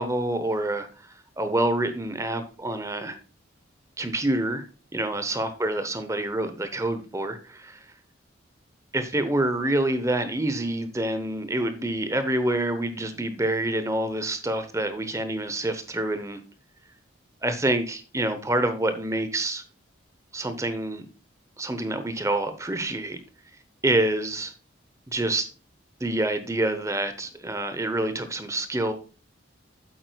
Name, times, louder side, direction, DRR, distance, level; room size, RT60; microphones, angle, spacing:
voice 1, 0.0-3.2 4.0-4.6 4.9-7.8 8.9-16.4 17.4-19.6 20.3-21.1 21.6-23.2 23.8-24.5 25.1-25.5 26.0-28.9, right 1 dB, 15° right, 9 dB, 0.7 m, -27 dB
8.6 x 7.8 x 2.3 m, 0.36 s
head